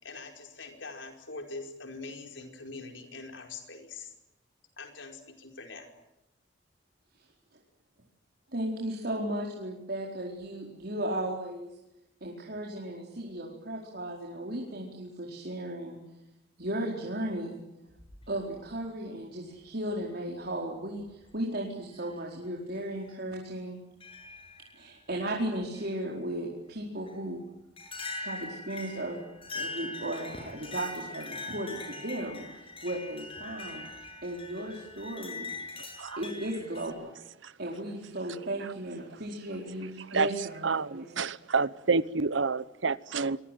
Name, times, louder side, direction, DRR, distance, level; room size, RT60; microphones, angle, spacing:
voice 1, 0.0-4.1 4.8-5.9, left 3 dB, 80° left, 5.0 m, -43 dB
voice 2, 8.5-11.7 12.2-16.0 16.6-17.6 18.3-23.8 24.8-27.4 28.2-29.3 29.5-35.5 36.2-37.1 37.6-41.1, right 1 dB, 55° right, 4.7 m, -35 dB
sound 1, 17.9-18.8 19.9-20.0 21.0-21.3 21.9-22.1 22.7-22.9 24.0-24.7 25.2-25.9 27.1-27.2 27.8-36.9, left 3 dB, 30° left, 7.9 m, -42 dB
voice 3, 38.3-38.7 40.1-40.3 40.6-43.4, right 4 dB, 80° right, 1.0 m, -29 dB
25.5 x 23.0 x 9.3 m
head